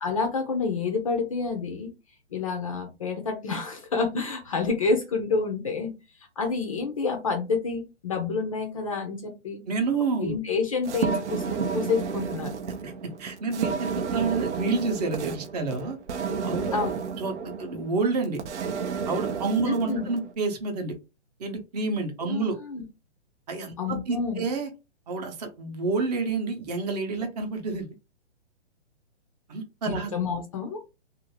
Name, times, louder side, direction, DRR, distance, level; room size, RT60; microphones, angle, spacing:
voice 1, 0.0-1.9 2.3-5.9 6.4-9.6 10.2-12.5 16.7-17.0 19.7-20.0 22.3-22.8 23.8-24.5 29.9-30.8, left 4 dB, 30° left, 4 dB, 0.4 m, -28 dB
voice 2, 9.7-10.3 12.8-12.9 13.2-16.0 16.4-16.8 17.2-18.4 19.1-20.9 21.4-22.6 23.5-24.7 25.1-27.9 29.5-30.1, right 4 dB, 35° right, 5 dB, 0.7 m, -29 dB
sound 1, 10.8-20.3, right 6 dB, 90° right, 0.6 m, -32 dB
2.5 x 2.4 x 3.0 m, 0.28 s
hypercardioid pair, 150°, 34 cm